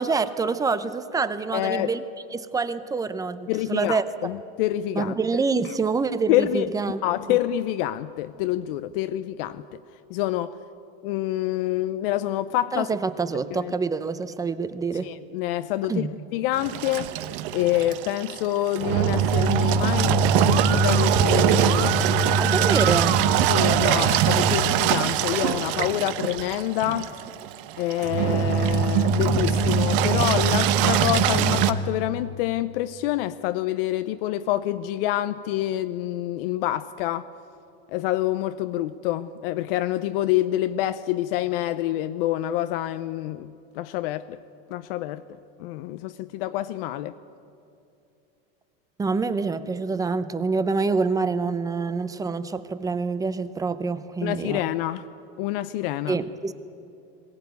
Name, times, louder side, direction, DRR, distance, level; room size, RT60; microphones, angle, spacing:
voice 1, 0.0-2.0 2.3-4.0 4.9-7.0 7.3-7.4 12.7-15.1 15.9-16.1 22.4-23.1 49.0-54.6 56.1-56.5, right 4 dB, 10° right, 13 dB, 0.6 m, -26 dB
voice 2, 1.5-1.9 3.5-5.2 6.3-6.7 7.0-9.8 10.1-10.6 11.0-12.9 13.5-13.7 15.0-17.1 17.5-21.9 23.5-27.1 27.8-37.3 37.9-44.4 44.7-45.2 45.6-47.1 54.2-55.0 55.4-56.2, left 14 dB, 70° left, 12 dB, 0.7 m, -27 dB
Engine, 16.6-31.7, right 7 dB, 60° right, 1.1 m, -22 dB
Musical instrument, 19.3-24.8, right 12 dB, 90° right, 1.4 m, -29 dB
21.5 x 17.0 x 9.4 m, 2.7 s
supercardioid pair, 155°, 30 cm